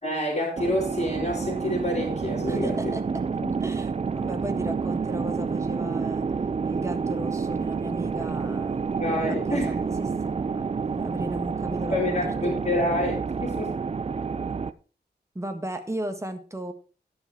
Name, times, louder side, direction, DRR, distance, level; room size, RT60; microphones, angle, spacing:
voice 1, 0.0-2.9 3.4-3.5 9.0-9.7 11.9-13.7, left 1 dB, 40° left, 4.2 m, -28 dB
sound 1, 0.6-14.7, right 5 dB, 35° right, 0.5 m, -29 dB
voice 2, 2.5-3.0 3.6-6.3 6.6-8.8 9.3-12.5 15.3-16.7, right 1 dB, 15° right, 1.5 m, -35 dB
11.5 x 6.7 x 4.7 m
wide cardioid pair, 115°, 18 cm